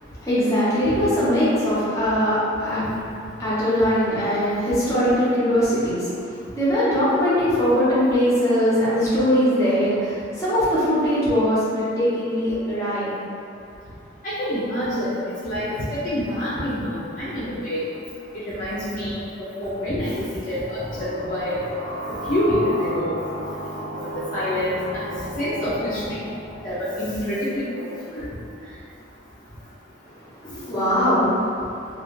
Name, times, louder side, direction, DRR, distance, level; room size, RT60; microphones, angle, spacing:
voice 1, 0.2-2.9 3.4-13.1 30.4-31.5, equal, 15° left, -11 dB, 0.8 m, -21 dB
voice 2, 14.2-15.7 16.0-17.9 18.3-21.6 22.3-23.2 23.9-26.2 26.6-28.3, left 1 dB, 45° left, -11 dB, 0.6 m, -27 dB
sound 1, 20.3-27.8, right 1 dB, 50° right, 0.5 m, -34 dB
2.4 x 2.3 x 3.1 m, 2.6 s
head